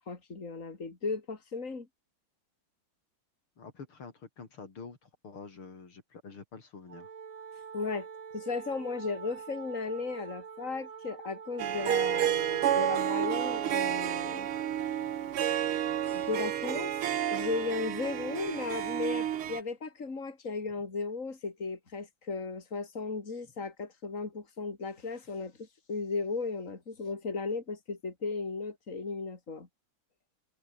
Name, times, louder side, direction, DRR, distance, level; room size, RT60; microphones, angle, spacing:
voice 1, 0.0-1.9 7.7-8.1 8.3-14.5 16.1-16.9 17.3-29.7, left 4 dB, 35° left, 3.9 m, -36 dB
voice 2, 3.6-7.1, left 4 dB, 75° left, 4.4 m, -47 dB
Wind instrument woodwind instrument, 6.9-14.9, right 6 dB, 65° right, 3.1 m, -47 dB
Harp, 11.6-19.6, right 10 dB, 85° right, 2.2 m, -30 dB
omnidirectional pair, 2.3 m